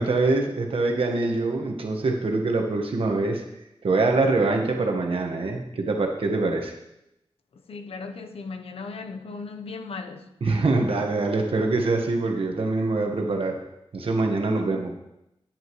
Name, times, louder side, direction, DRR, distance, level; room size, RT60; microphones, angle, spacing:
voice 1, 0.0-3.4 3.8-6.7 10.4-13.6 13.9-15.0, right 3 dB, 70° right, 2 dB, 1.4 m, -24 dB
voice 2, 7.5-10.3 10.7-11.1 14.6-14.9, left 4 dB, 85° left, 6 dB, 0.8 m, -37 dB
11.0 x 10.5 x 3.1 m, 0.85 s
wide cardioid pair, 110°, 10 cm